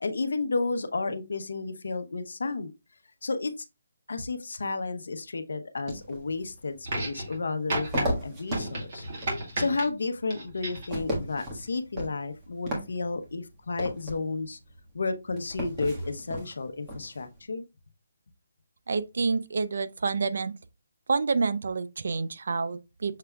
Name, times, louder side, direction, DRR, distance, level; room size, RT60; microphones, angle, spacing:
voice 1, 0.0-2.7 3.2-3.5 4.1-9.0 9.6-14.6 14.9-17.6, left 3 dB, 80° left, 0.7 m, -32 dB
sound 1, 5.9-17.4, equal, 15° right, 1.4 m, -36 dB
sound 2, 6.8-7.4 7.7-8.0 8.5-9.9 10.3-10.9 12.0-12.1, right 2 dB, 40° right, 2.2 m, -33 dB
voice 2, 18.9-20.5 21.1-23.2, right 4 dB, 65° right, 0.4 m, -28 dB
6.6 x 3.4 x 2.3 m
hypercardioid pair, 165°, 0 cm